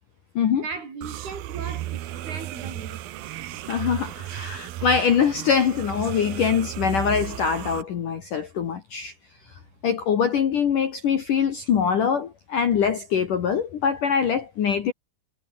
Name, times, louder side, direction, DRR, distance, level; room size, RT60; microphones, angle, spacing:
voice 1, 0.6-3.0 9.5-9.8, right 4 dB, 50° right, 8.2 m, -38 dB
sound 1, 1.0-7.8, right 14 dB, 75° right, 2.2 m, -34 dB
voice 2, 3.7-9.1 9.8-14.9, left 7 dB, 55° left, 2.7 m, -23 dB
omnidirectional pair, 5.8 m